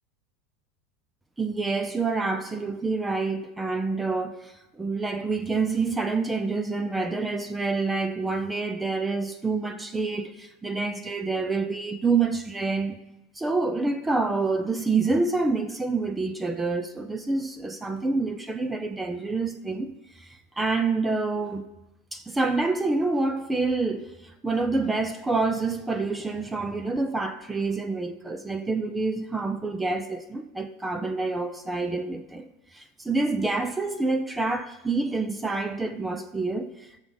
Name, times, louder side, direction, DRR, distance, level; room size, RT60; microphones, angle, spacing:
voice 1, 1.4-13.0 13.4-21.7 22.1-37.0, right 3 dB, 10° right, 0.6 m, -27 dB
15.0 x 6.3 x 4.0 m
supercardioid pair, 130°, 0 cm